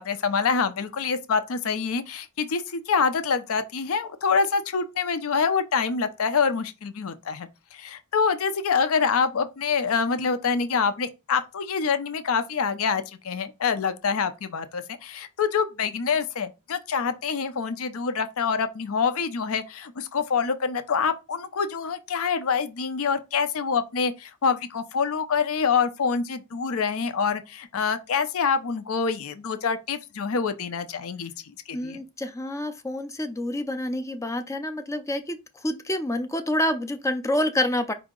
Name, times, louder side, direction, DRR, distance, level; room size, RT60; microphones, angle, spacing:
voice 1, 0.0-32.0, left 5 dB, 65° left, 0.5 m, -26 dB
voice 2, 31.7-37.9, left 1 dB, 15° left, 0.4 m, -28 dB
4.9 x 2.7 x 3.7 m
head